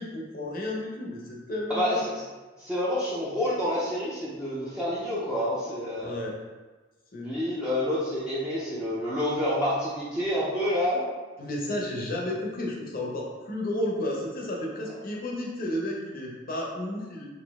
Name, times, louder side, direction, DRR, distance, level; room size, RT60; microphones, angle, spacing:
voice 1, 0.0-2.0 6.0-6.4 7.1-7.4 11.4-17.3, left 1 dB, 45° left, -1 dB, 0.7 m, -32 dB
voice 2, 1.7-2.2 2.6-6.1 7.2-11.0, left 1 dB, 5° right, -10 dB, 0.6 m, -28 dB
4.1 x 2.7 x 3.5 m, 1.3 s
head